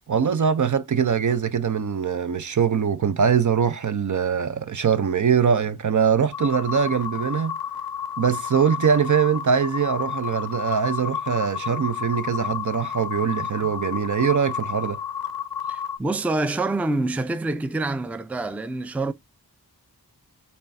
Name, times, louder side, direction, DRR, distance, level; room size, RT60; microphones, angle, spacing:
voice 1, 0.1-7.6 8.2-15.0, right 7 dB, 50° right, 0.6 m, -22 dB
sound 1, 6.3-16.0, left 8 dB, 70° left, 0.6 m, -31 dB
voice 2, 15.7-19.1, right 2 dB, 5° right, 0.4 m, -26 dB
4.3 x 3.3 x 2.5 m
cardioid pair, 40°, 39 cm